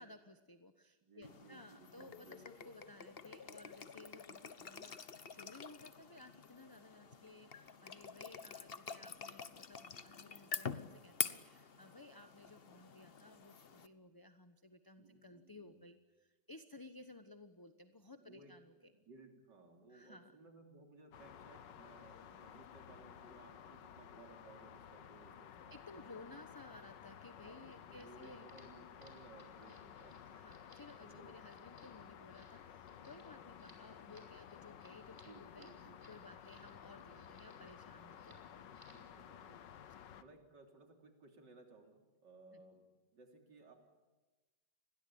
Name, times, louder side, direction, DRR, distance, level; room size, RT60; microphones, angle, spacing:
voice 1, 0.0-18.9 19.9-20.3 25.7-28.5 30.2-38.6 42.5-42.6, left 2 dB, 15° left, 9 dB, 0.9 m, -57 dB
voice 2, 1.0-2.4 15.0-15.8 18.2-18.5 18.9-26.2 27.4-30.3 31.0-31.5 35.1-36.0 38.9-39.7 40.2-42.8 43.1-43.8, right 3 dB, 75° right, 4 dB, 3.9 m, -60 dB
sound 1, 1.2-13.9, left 6 dB, 40° left, 1.1 m, -47 dB
sound 2, 21.1-40.2, left 9 dB, 85° left, 1.8 m, -55 dB
sound 3, 27.6-36.7 37.0-37.8 38.1-38.4 38.7-39.1, right 1 dB, 10° right, 5.3 m, -66 dB
30.0 x 22.0 x 8.7 m, 1.2 s
omnidirectional pair, 1.9 m